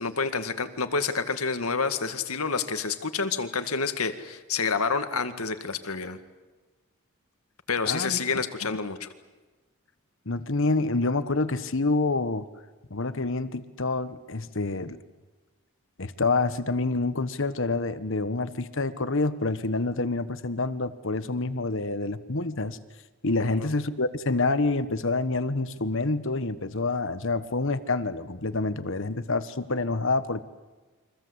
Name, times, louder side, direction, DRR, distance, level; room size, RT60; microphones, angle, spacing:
voice 1, 0.0-6.2 7.7-9.1 23.4-23.7, left 5 dB, 75° left, 9 dB, 2.1 m, -28 dB
voice 2, 7.8-8.2 8.6-8.8 10.2-12.5 12.9-15.0 16.0-22.8 23.2-30.4, left 3 dB, 60° left, 12 dB, 1.4 m, -27 dB
29.5 x 24.5 x 8.2 m, 1.3 s
head